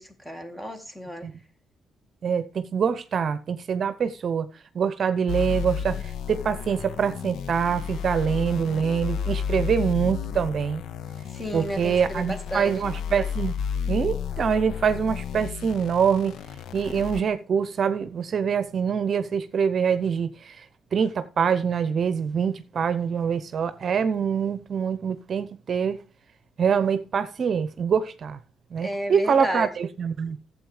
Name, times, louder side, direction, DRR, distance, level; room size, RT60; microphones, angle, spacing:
voice 1, 0.0-1.3 11.3-12.8 28.8-29.7, equal, 10° left, 2.0 m, -32 dB
voice 2, 2.2-4.5 4.7-10.8 11.5-13.6 13.9-16.3 16.7-20.6 20.9-26.0 26.6-28.4 28.7-30.4, right 7 dB, 50° right, 0.8 m, -25 dB
sound 1, 5.3-17.2, left 7 dB, 75° left, 0.7 m, -32 dB
11.5 x 7.8 x 4.9 m
cardioid pair, 90°, 0 cm